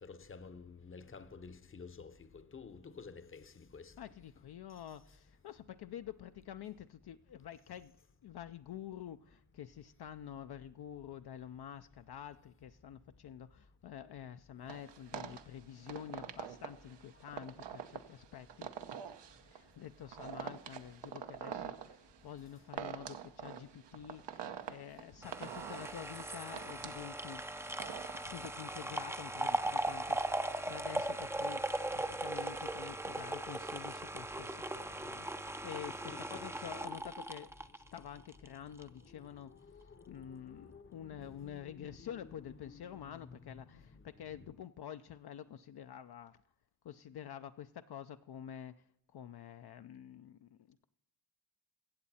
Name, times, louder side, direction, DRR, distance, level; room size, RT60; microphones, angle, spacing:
voice 1, 0.0-2.1 2.5-3.9 36.1-36.3 40.3-40.8 41.2-43.1, left 5 dB, 30° left, 0.7 m, -51 dB
voice 2, 4.0-7.9 8.2-18.7 19.5-27.4 28.2-37.5 37.9-46.4 46.8-48.8 49.1-50.8, left 9 dB, 65° left, 0.5 m, -48 dB
sound 1, 14.7-28.5, right 8 dB, 80° right, 0.8 m, -46 dB
sound 2, 25.2-38.5 38.8-38.9, right 1 dB, 5° right, 0.4 m, -38 dB
15.5 x 7.6 x 4.2 m
cardioid pair, 65°, 42 cm